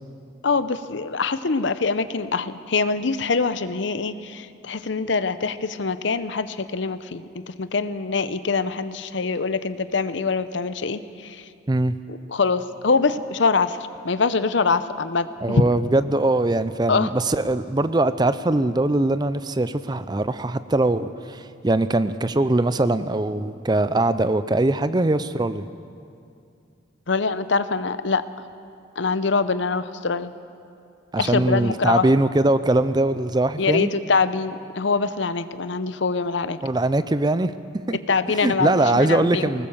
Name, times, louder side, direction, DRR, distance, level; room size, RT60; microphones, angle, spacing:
voice 1, 0.4-11.4 12.1-13.8 14.0-15.6 16.9-17.1 27.1-28.2 29.0-30.3 31.2-32.1 33.6-36.6 37.9-39.5, left 4 dB, 70° left, 13 dB, 0.7 m, -24 dB
voice 2, 15.4-25.7 31.1-33.9 36.6-37.5 37.9-38.0 38.4-39.7, right 2 dB, 20° right, 13 dB, 0.5 m, -21 dB
20.0 x 19.5 x 7.2 m, 2.4 s
head